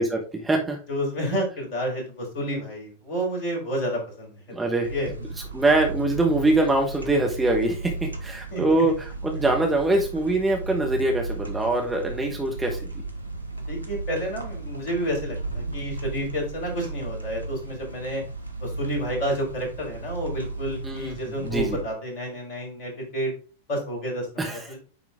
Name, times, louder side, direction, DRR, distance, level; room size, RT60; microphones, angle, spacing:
voice 1, 0.0-0.8 4.5-4.9 5.5-12.9 20.8-21.2 21.4-21.8 24.4-24.6, right 2 dB, 10° right, 0 dB, 1.2 m, -23 dB
voice 2, 0.9-4.4 4.7-5.1 8.5-8.8 13.7-18.2 18.6-23.3 23.7-24.8, equal, 45° left, -1 dB, 4.2 m, -30 dB
sound 1, 4.8-21.8, right 3 dB, 85° left, 1.3 m, -35 dB
9.5 x 3.8 x 3.6 m, 0.35 s
figure-of-eight pair, 90°, 0 cm